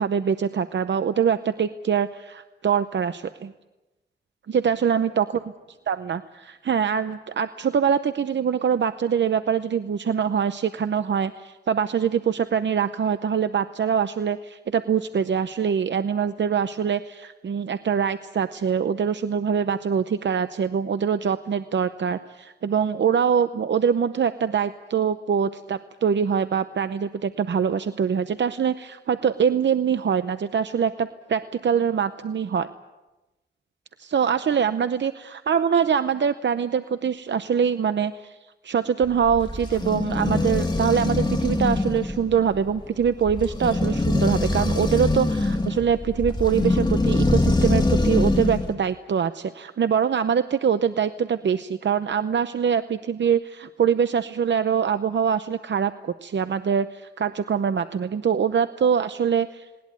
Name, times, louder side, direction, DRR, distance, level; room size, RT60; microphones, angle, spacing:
voice 1, 0.0-3.5 4.5-5.3 5.9-32.7 34.0-38.4 38.6-59.7, right 7 dB, 80° right, 11 dB, 0.7 m, -24 dB
sound 1, 39.0-48.7, left 2 dB, 25° left, 2.5 m, -23 dB
20.0 x 19.5 x 9.5 m, 1.1 s
wide cardioid pair, 125°, 19 cm